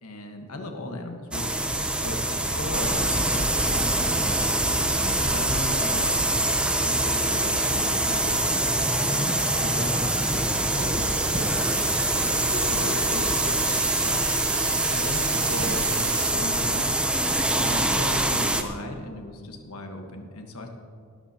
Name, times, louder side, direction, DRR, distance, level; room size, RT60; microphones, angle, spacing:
voice 1, 0.0-1.5 2.0-6.2 6.8-8.4 9.0-11.7 12.1-14.3 14.9-17.0 17.5-20.7, left 1 dB, 75° left, 3 dB, 1.4 m, -37 dB
sound 1, 1.3-18.6, right 1 dB, 5° right, 0.6 m, -24 dB
Ringtone, 7.1-13.9, right 4 dB, 45° right, 1.1 m, -44 dB
sound 2, 10.1-16.3, right 12 dB, 80° right, 0.6 m, -35 dB
18.0 x 13.0 x 2.9 m, 2.2 s
head